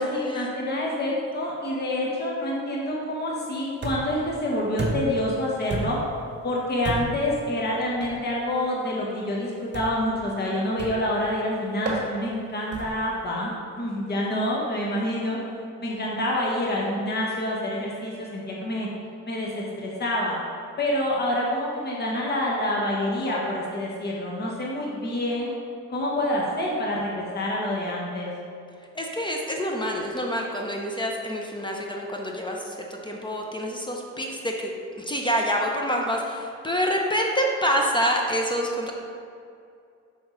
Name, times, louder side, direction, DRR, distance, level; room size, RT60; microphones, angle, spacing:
voice 1, 0.0-6.0 6.4-15.4 15.8-18.9 19.2-20.4 20.8-25.5 25.9-28.3, left 1 dB, 35° left, -4 dB, 1.3 m, -27 dB
sound 1, 3.8-4.2 4.8-5.2 5.7-6.1 6.8-7.3 8.0-8.2 9.7-10.1 10.8-11.1 11.9-12.1 12.7-13.1, right 2 dB, 35° right, 1.4 m, -31 dB
voice 2, 28.9-32.8 33.0-34.7 35.0-38.9, equal, 15° left, 0 dB, 0.8 m, -27 dB
6.1 x 5.7 x 4.0 m, 2.4 s
cardioid pair, 90°, 30 cm